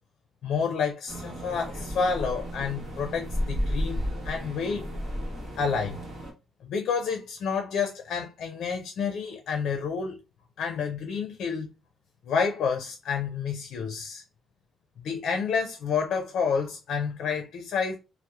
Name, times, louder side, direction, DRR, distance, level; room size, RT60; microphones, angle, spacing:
voice 1, 0.4-4.9 5.6-6.0 6.6-10.2 10.6-11.7 12.2-14.2 15.0-17.9, left 6 dB, 70° left, 0.4 m, -29 dB
sound 1, 1.1-6.3, equal, 55° right, 1.0 m, -33 dB
2.7 x 2.0 x 2.2 m
cardioid pair, 90°, 0 cm